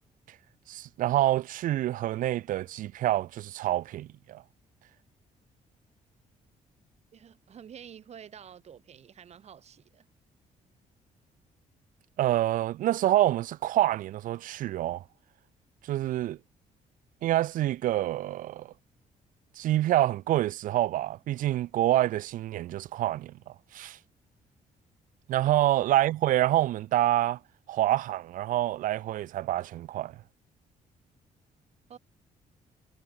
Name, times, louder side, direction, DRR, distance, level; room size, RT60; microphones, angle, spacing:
voice 1, 0.7-4.4 12.2-15.0 15.9-16.4 17.2-18.7 19.6-23.3 23.7-24.0 25.3-27.4 27.7-30.1, right 14 dB, 70° right, 0.4 m, -27 dB
voice 2, 7.1-10.0 25.4-25.5 31.9-32.0, right 8 dB, 50° right, 1.6 m, -49 dB
cardioid pair, 125°, 14 cm